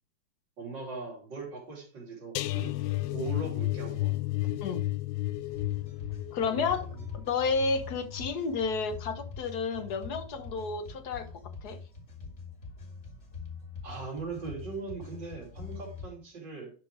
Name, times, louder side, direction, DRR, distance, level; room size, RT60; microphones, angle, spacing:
voice 1, 0.6-2.8 3.1-4.1 4.4-4.5 6.5-7.1 13.8-16.7, right 4 dB, 70° right, -4 dB, 3.7 m, -40 dB
sound 1, 2.4-9.4 9.8-10.1 10.4-10.5, left 17 dB, 85° left, 1.3 m, -33 dB
sound 2, 5.5-16.1, left 4 dB, 40° left, 2.4 m, -44 dB
voice 2, 6.3-6.9 7.1-11.3 11.6-11.8, left 4 dB, 60° left, 9 dB, 1.5 m, -31 dB
11.0 x 4.5 x 4.9 m, 0.40 s
omnidirectional pair, 2.0 m